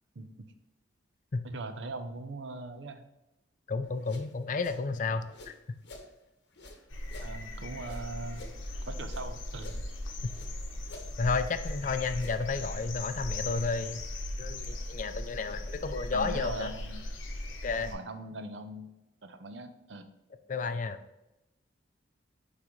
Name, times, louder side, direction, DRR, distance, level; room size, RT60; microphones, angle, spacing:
voice 1, 0.2-0.5 1.4-3.1 7.2-8.4 8.9-9.8 16.1-17.1 17.7-18.9 19.2-20.0, right 2 dB, 70° right, 9 dB, 0.6 m, -40 dB
voice 2, 3.7-5.5 11.2-14.0 14.4-16.7 17.6-17.9 20.5-21.0, left 4 dB, 40° left, 10 dB, 0.4 m, -32 dB
sound 1, 3.8-6.1 6.5-9.3 9.5-10.5 10.8-12.6, left 2 dB, 60° left, 0.9 m, -50 dB
sound 2, 6.9-17.9, left 1 dB, 90° left, 0.9 m, -38 dB
9.3 x 3.8 x 3.1 m, 0.93 s
head